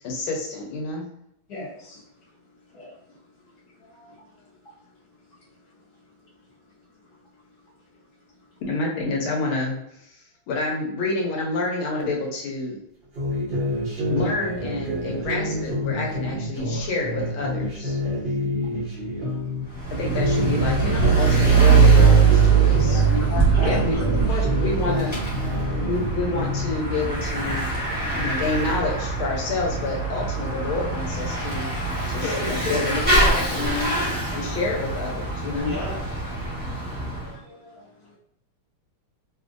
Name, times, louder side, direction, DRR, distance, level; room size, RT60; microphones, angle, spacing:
voice 1, 0.0-1.1 8.6-12.8 14.1-18.0 19.9-23.0 23.6-25.1 25.8-27.7 28.1-31.7 32.1-33.9 34.3-35.8, left 3 dB, 75° left, -1 dB, 1.6 m, -28 dB
voice 2, 1.5-2.0 2.7-2.9 3.8-4.2 23.6-23.8 37.2-38.2, equal, 60° left, -5 dB, 1.2 m, -38 dB
sound 1, 13.2-19.6 20.0-23.3 23.6-26.7, left 1 dB, 85° right, 0.4 m, -28 dB
Bicycle / Mechanisms, 19.7-37.3, right 4 dB, 5° right, 0.8 m, -22 dB
voice 3, 22.8-24.2 32.2-34.2 35.6-36.0, left 3 dB, 35° left, -7 dB, 0.9 m, -31 dB
3.4 x 2.5 x 2.5 m, 0.78 s
omnidirectional pair, 2.3 m